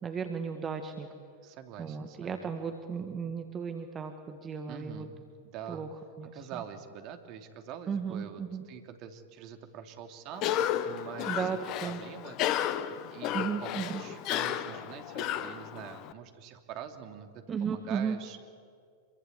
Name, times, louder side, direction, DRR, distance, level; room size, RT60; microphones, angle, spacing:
voice 1, 0.0-1.1 1.8-5.1 5.7-5.9 6.2-6.3 7.9-8.6 11.3-12.0 13.3-14.0 17.5-18.2, right 6 dB, 25° right, 6 dB, 1.8 m, -35 dB
voice 2, 1.4-2.5 4.7-5.1 5.4-5.8 6.3-12.7 13.1-18.5, right 8 dB, 45° right, 6 dB, 2.9 m, -45 dB
Cough, 10.3-16.1, left 11 dB, 45° left, 1.3 m, -33 dB
26.5 x 23.5 x 8.3 m, 2.1 s
figure-of-eight pair, 95°, 0 cm